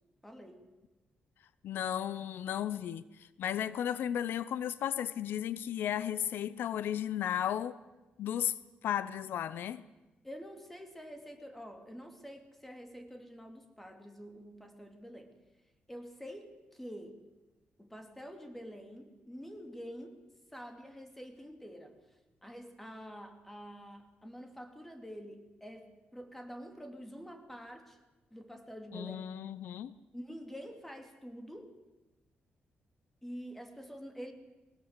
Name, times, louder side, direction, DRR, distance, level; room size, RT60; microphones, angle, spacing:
voice 1, 0.2-0.7 10.2-15.3 15.9-17.2 17.8-20.2 20.5-22.0 22.4-28.0 28.3-29.2 30.1-31.8 33.2-34.3, equal, 5° left, 6 dB, 2.6 m, -47 dB
voice 2, 1.6-7.8 8.2-8.6 8.8-9.8 28.9-29.9, left 10 dB, 80° left, 17 dB, 0.6 m, -34 dB
21.5 x 19.0 x 8.2 m, 1.1 s
cardioid pair, 145°, 4 cm